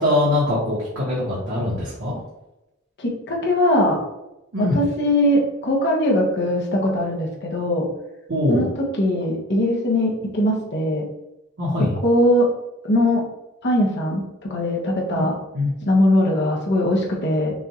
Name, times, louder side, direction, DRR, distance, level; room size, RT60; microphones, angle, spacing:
voice 1, 0.0-2.2 4.5-4.8 8.3-8.7 11.6-12.0 15.5-15.7, left 1 dB, 60° right, -8 dB, 1.4 m, -22 dB
voice 2, 3.0-4.0 4.6-7.9 8.5-8.7 9.0-11.0 12.0-12.5 12.8-13.2 13.6-14.2 14.5-15.3 15.9-17.5, left 1 dB, 55° left, -2 dB, 1.1 m, -20 dB
6.1 x 2.6 x 3.0 m, 0.93 s
head